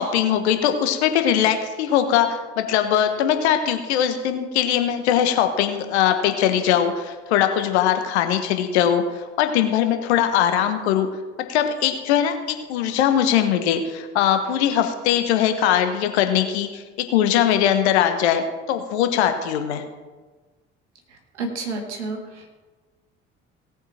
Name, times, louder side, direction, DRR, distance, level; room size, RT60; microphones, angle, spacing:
voice 1, 0.0-9.0 9.4-11.1 11.5-16.8 17.1-19.8, left 9 dB, 75° left, 8 dB, 1.3 m, -21 dB
voice 2, 21.4-22.5, right 3 dB, 80° right, 2 dB, 1.8 m, -30 dB
17.5 x 8.0 x 4.4 m, 1.3 s
figure-of-eight pair, 55°, 34 cm